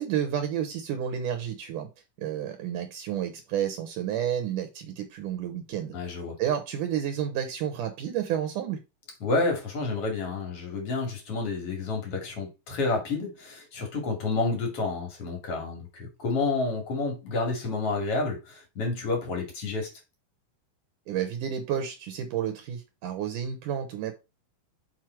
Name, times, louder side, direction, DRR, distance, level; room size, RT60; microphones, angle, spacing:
voice 1, 0.0-1.9 2.2-5.9 6.4-8.8 21.1-24.1, right 9 dB, 70° right, 2.3 m, -30 dB
voice 2, 5.9-6.4 9.2-19.9, left 3 dB, 45° left, 3.1 m, -29 dB
6.1 x 5.6 x 4.5 m
omnidirectional pair, 4.1 m